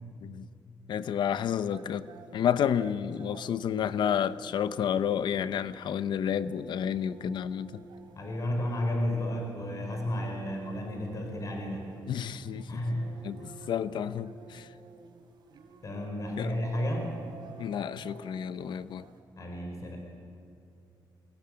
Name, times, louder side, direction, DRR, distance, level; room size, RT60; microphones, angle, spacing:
voice 1, 0.9-2.1 2.3-7.8 12.1-12.8 13.2-14.7 16.4-16.5 17.6-19.0, left 8 dB, 70° left, 0.8 m, -30 dB
sound 1, 1.7-19.2, right 5 dB, 65° right, 3.4 m, -52 dB
voice 2, 8.1-11.9 12.7-13.1 13.4-13.5 15.8-17.1 19.4-20.0, left 1 dB, 45° left, 4.6 m, -32 dB
23.0 x 18.0 x 9.0 m
cardioid pair, 110°, 8 cm